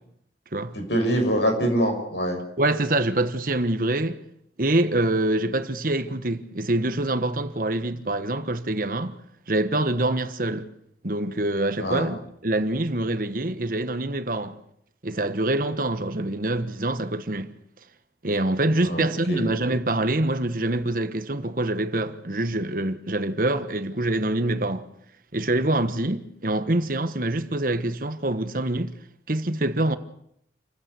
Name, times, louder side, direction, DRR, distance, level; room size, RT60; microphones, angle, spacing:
voice 1, 0.7-2.4 11.8-12.1 18.8-19.5, equal, 85° left, 6.7 m, -24 dB
voice 2, 2.6-4.2 4.6-9.2 9.5-10.7 11.0-14.6 15.0-17.5 18.2-24.9 25.3-28.9 29.3-30.0, right 1 dB, 50° right, 1.3 m, -25 dB
28.5 x 15.5 x 8.2 m
head